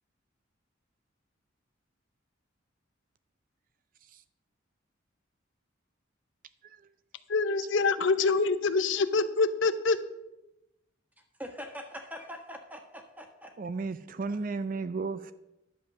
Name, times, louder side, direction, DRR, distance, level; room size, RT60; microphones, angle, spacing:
voice 1, 7.3-10.0, left 4 dB, 70° left, 0.7 m, -25 dB
voice 2, 11.4-13.5, equal, 10° right, 1.5 m, -43 dB
voice 3, 13.6-15.3, right 4 dB, 45° right, 0.4 m, -34 dB
11.5 x 7.5 x 6.0 m
head